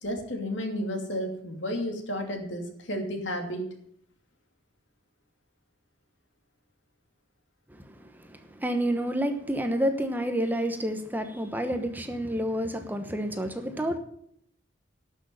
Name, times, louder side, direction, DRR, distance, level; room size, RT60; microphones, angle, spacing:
voice 1, 0.0-3.7, equal, 80° left, 3 dB, 2.7 m, -32 dB
voice 2, 8.3-14.0, equal, 10° right, 6 dB, 1.1 m, -29 dB
11.5 x 6.5 x 8.9 m, 0.69 s
head